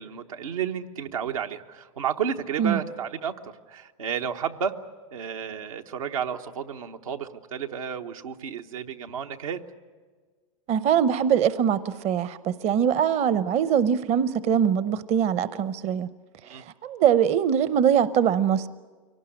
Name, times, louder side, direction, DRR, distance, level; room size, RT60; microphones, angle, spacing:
voice 1, 0.0-4.7 5.1-9.6 16.4-16.6, right 8 dB, 85° right, 5 dB, 1.2 m, -32 dB
voice 2, 10.7-16.1 16.5-18.7, right 8 dB, 40° right, 15 dB, 0.7 m, -22 dB
23.5 x 18.0 x 10.0 m, 1.5 s
hypercardioid pair, 110°, 17 cm